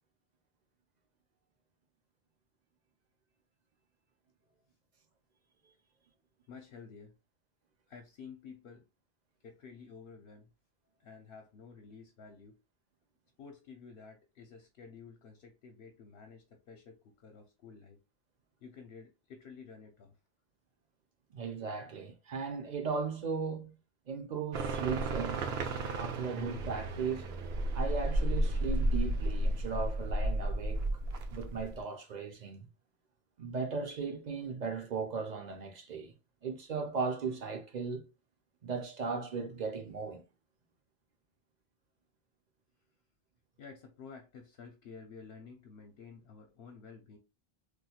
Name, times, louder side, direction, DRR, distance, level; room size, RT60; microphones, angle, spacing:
voice 1, 6.5-7.1 7.9-8.8 9.4-10.5 11.0-12.6 13.4-18.0 18.6-20.2 43.6-47.2, left 5 dB, 70° left, 0.8 m, -51 dB
voice 2, 21.3-23.7 24.1-27.3 27.7-30.8 31.3-32.7 33.4-36.1 36.4-38.0 38.6-40.2, right 5 dB, 55° right, 0.6 m, -37 dB
sound 1, 24.5-31.8, right 1 dB, 85° right, 0.8 m, -33 dB
4.2 x 2.4 x 2.3 m
omnidirectional pair, 1.1 m